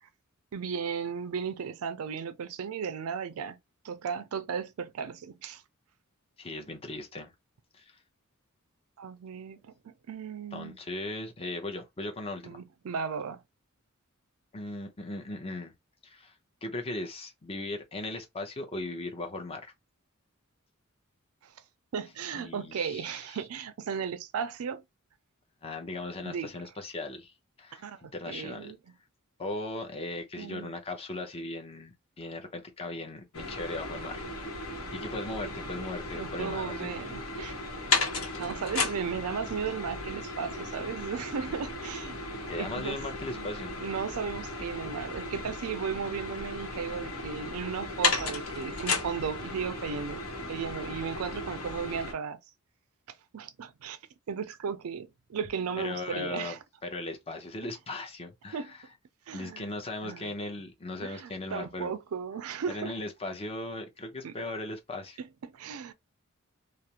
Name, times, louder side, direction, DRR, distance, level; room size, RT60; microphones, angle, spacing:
voice 1, 0.5-3.6 3.8-5.6 9.0-10.8 12.4-13.4 21.4-21.5 21.9-24.8 26.2-26.5 27.7-28.0 28.3-28.9 30.4-30.7 36.1-37.5 38.4-42.2 42.6-43.0 43.3-43.5 43.8-52.4 53.3-54.0 54.3-56.6 58.5-58.7 59.3-59.7 60.0-60.3 61.0-62.9 64.2-64.3 65.2-65.9, right 6 dB, 85° right, 0.4 m, -35 dB
voice 2, 6.4-7.3 7.7-7.9 10.5-12.6 14.5-15.7 16.0-16.3 16.6-19.7 22.3-23.4 25.6-27.3 27.6-27.8 28.1-28.7 29.4-34.5 34.9-36.9 42.5-43.8 55.8-58.8 59.3-61.9 62.7-65.2, left 2 dB, 25° left, 0.6 m, -38 dB
sound 1, 33.3-52.1, left 3 dB, 70° left, 0.9 m, -35 dB
2.4 x 2.0 x 2.8 m
head